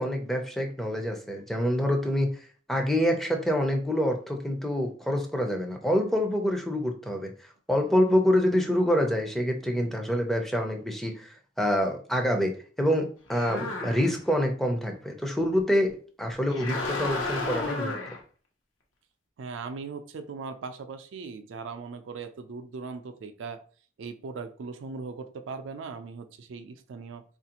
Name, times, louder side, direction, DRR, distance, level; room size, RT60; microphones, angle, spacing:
voice 1, 0.0-7.3 7.7-11.3 11.6-12.5 12.8-15.9 16.2-17.9, equal, ahead, 3 dB, 0.4 m, -26 dB
sound 1, 13.3-14.3 16.5-18.2, left 2 dB, 80° left, 0.8 m, -33 dB
voice 2, 19.4-23.6 24.0-27.2, right 4 dB, 65° right, 9 dB, 0.4 m, -39 dB
4.0 x 2.5 x 2.8 m, 0.42 s
head